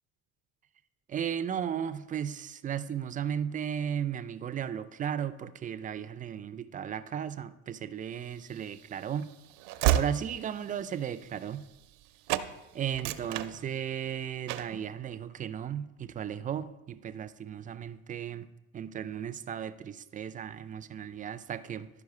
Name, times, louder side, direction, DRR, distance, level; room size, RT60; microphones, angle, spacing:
voice 1, 1.1-9.3 9.9-11.7 12.7-18.5 18.7-21.9, right 9 dB, 20° right, 13 dB, 0.3 m, -35 dB
Train / Slam, 8.4-12.0 12.3-12.5 12.9-14.1 14.5-14.8, right 12 dB, 80° right, 0.7 m, -32 dB
12.0 x 4.9 x 4.8 m, 1.0 s
supercardioid pair, 115°, 38 cm